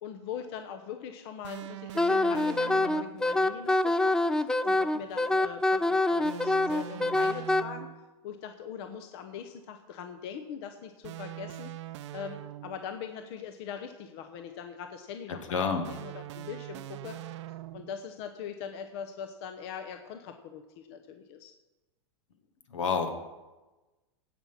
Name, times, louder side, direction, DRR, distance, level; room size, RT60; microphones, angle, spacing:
voice 1, 0.0-7.9 8.2-11.7 12.1-17.2 17.7-21.5, left 7 dB, 55° left, 7 dB, 1.0 m, -42 dB
sound 1, 1.4-3.3 6.2-8.1 11.0-13.0 15.8-18.0, right 13 dB, 65° right, 0.6 m, -42 dB
Wind instrument woodwind instrument, 2.0-7.6, left 2 dB, 5° left, 0.4 m, -25 dB
voice 2, 15.5-15.9 22.7-23.1, left 5 dB, 85° left, 7 dB, 1.8 m, -28 dB
16.5 x 6.1 x 5.7 m, 1.1 s
hypercardioid pair, 125°, 16 cm